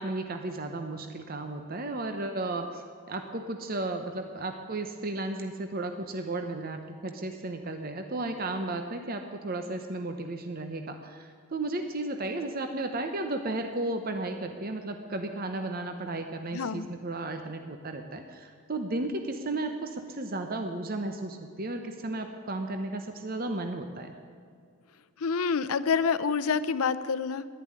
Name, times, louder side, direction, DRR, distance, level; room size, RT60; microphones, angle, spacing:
voice 1, 0.0-24.1, right 2 dB, 45° right, 6 dB, 0.9 m, -34 dB
voice 2, 16.5-16.9 25.2-27.5, left 5 dB, 85° left, 13 dB, 0.6 m, -27 dB
11.0 x 10.5 x 9.6 m, 2.2 s
head